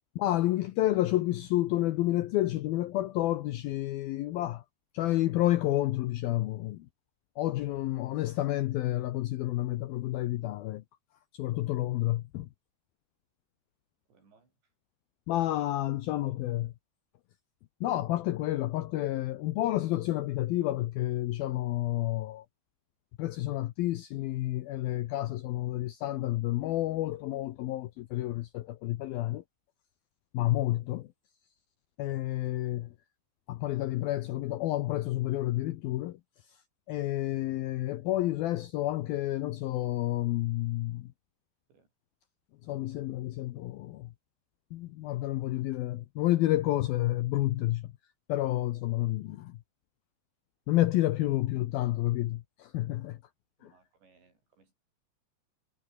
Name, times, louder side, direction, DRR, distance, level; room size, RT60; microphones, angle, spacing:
voice 1, 0.2-4.6 4.9-6.9 7.4-10.8 11.3-12.5 15.3-16.7 17.8-22.5 23.2-29.4 30.3-31.1 32.0-32.9 33.5-36.2 36.5-36.6 36.9-41.1 42.6-44.1 44.7-47.9 48.3-49.6 50.7-53.2, left 15 dB, 75° left, 2.2 m, -30 dB
voice 2, 14.1-14.7 16.1-16.6 27.2-27.3 32.4-32.7 41.7-41.9 53.6-54.7, right 4 dB, 70° right, 10.0 m, -66 dB
omnidirectional pair, 5.2 m